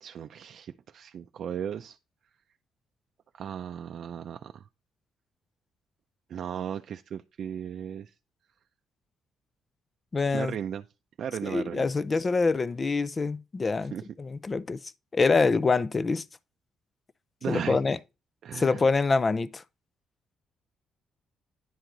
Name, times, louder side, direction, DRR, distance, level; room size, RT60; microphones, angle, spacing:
voice 1, 0.0-2.0 3.4-4.6 6.3-8.1 10.3-10.8 11.2-11.9 13.9-14.0 17.4-17.8 18.4-18.9, right 8 dB, 65° right, 0.4 m, -36 dB
voice 2, 10.1-10.5 11.4-14.8 15.1-16.2 17.5-18.0 18.5-19.6, left 4 dB, 30° left, 0.5 m, -25 dB
10.5 x 4.5 x 3.8 m
cardioid pair, 90°, 0 cm